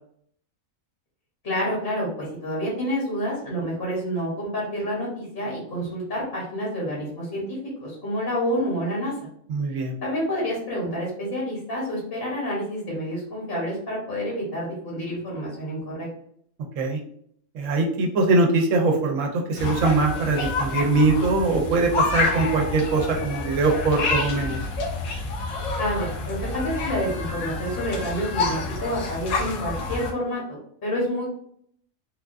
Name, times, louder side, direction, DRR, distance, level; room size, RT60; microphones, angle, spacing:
voice 1, 1.4-9.1 10.0-16.1 25.8-31.3, equal, 45° left, -5 dB, 1.1 m, -28 dB
voice 2, 9.5-10.0 16.8-17.0 17.5-24.6, right 3 dB, 70° right, 1 dB, 0.9 m, -22 dB
sound 1, 19.6-30.1, left 3 dB, 85° left, 1.1 m, -28 dB
3.6 x 2.2 x 2.4 m, 0.65 s
omnidirectional pair, 1.4 m